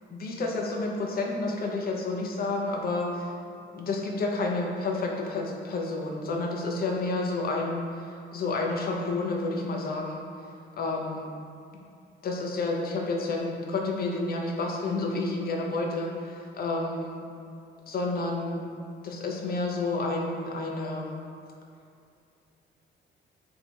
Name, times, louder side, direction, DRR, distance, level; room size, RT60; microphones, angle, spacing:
voice 1, 0.1-3.3 3.7-10.3 10.8-11.3 12.2-17.2 17.9-18.7 19.0-21.2, left 2 dB, 50° left, 0 dB, 0.7 m, -30 dB
3.2 x 2.8 x 4.3 m, 2.4 s
cardioid pair, 90°, 20 cm